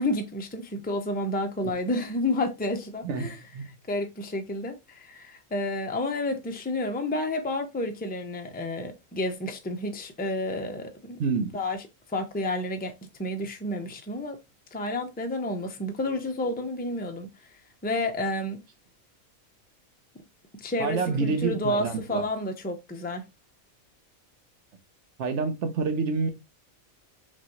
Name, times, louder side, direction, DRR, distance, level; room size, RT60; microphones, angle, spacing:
voice 1, 0.0-3.4 3.9-11.2 11.5-11.8 12.1-12.9 13.2-14.4 14.7-17.3 17.8-18.6 20.6-23.2, left 1 dB, 10° left, 0.4 m, -30 dB
voice 2, 3.0-3.6 11.2-11.5 20.8-22.2 25.2-26.3, right 4 dB, 60° right, 1.1 m, -28 dB
6.2 x 2.6 x 3.0 m
omnidirectional pair, 1.4 m